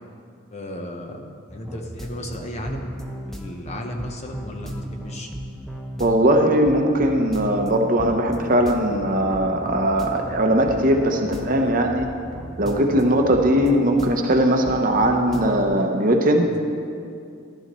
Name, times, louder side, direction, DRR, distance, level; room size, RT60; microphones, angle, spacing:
voice 1, 0.5-1.2 1.5-2.9 3.3-5.3 11.6-11.7, left 1 dB, 30° left, 2 dB, 0.8 m, -34 dB
sound 1, 1.5-15.9, equal, ahead, 0.6 m, -36 dB
voice 2, 6.0-12.1 12.6-16.5, right 1 dB, 40° right, 3 dB, 0.8 m, -19 dB
14.0 x 11.5 x 3.1 m, 2.4 s
head